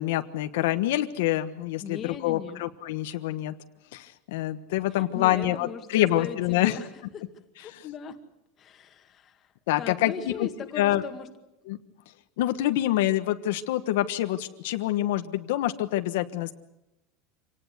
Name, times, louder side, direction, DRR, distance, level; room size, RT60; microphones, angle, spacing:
voice 1, 0.0-3.5 3.9-6.8 9.7-10.5 10.8-11.0 11.7-11.8 12.4-16.5, left 14 dB, 75° left, 8 dB, 1.3 m, -26 dB
voice 2, 1.8-2.6 4.9-6.9 7.1-7.2 7.6-8.2 8.6-9.5 9.8-11.3, left 7 dB, 25° left, 5 dB, 2.0 m, -38 dB
26.5 x 18.5 x 8.2 m, 0.91 s
supercardioid pair, 175°, 0 cm